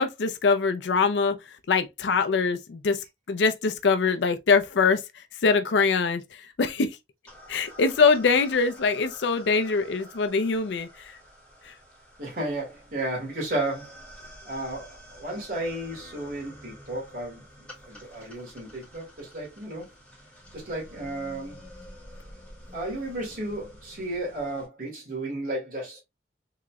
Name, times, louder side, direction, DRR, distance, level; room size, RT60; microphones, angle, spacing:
voice 1, 0.0-1.4 1.7-7.0 7.5-11.2 11.6-11.7, left 4 dB, 75° left, 0.5 m, -23 dB
sound 1, 7.3-24.7, equal, 5° left, 1.7 m, -49 dB
voice 2, 12.2-14.1 14.5-17.4 17.8-19.9 20.5-21.6 22.7-26.0, right 1 dB, 50° right, 1.8 m, -33 dB
3.8 x 3.0 x 2.3 m
head